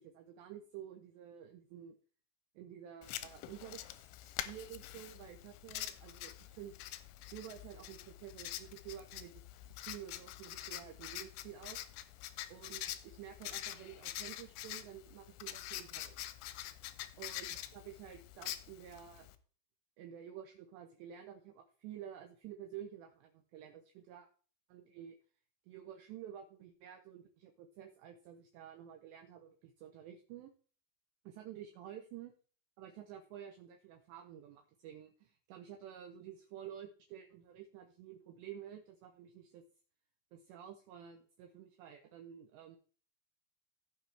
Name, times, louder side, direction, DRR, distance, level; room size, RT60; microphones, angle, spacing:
voice 1, 0.0-2.0 2.6-3.8 4.2-6.8 7.3-11.8 12.5-16.2 17.2-19.3 20.0-24.3 24.7-25.2 25.7-30.5 31.3-32.3 32.8-39.6 40.3-42.8, right 10 dB, 85° right, 5 dB, 2.5 m, -51 dB
Writing, 3.0-19.4, left 14 dB, 80° left, 2.8 m, -46 dB
16.5 x 5.9 x 3.3 m, 0.42 s
omnidirectional pair, 6.0 m